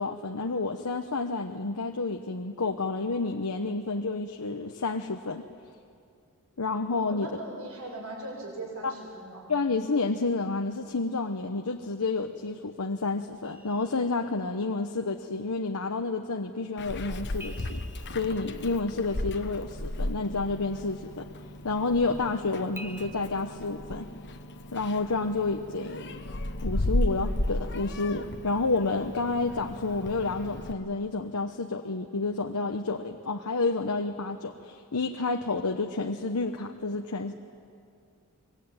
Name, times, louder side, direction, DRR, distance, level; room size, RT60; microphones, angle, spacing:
voice 1, 0.0-5.5 6.6-7.3 8.8-8.9 9.5-17.8 18.1-21.3 21.6-24.1 24.7-26.2 26.6-37.3, left 3 dB, 85° left, 5 dB, 1.1 m, -30 dB
voice 2, 7.0-9.5, right 2 dB, 70° right, -1 dB, 7.7 m, -39 dB
sound 1, 13.4-14.8 17.4-19.4 22.8-23.1, equal, 10° right, 1.3 m, -48 dB
Meow, 16.8-30.7, left 1 dB, 50° left, 1.2 m, -35 dB
24.5 x 22.0 x 9.0 m, 2.3 s
head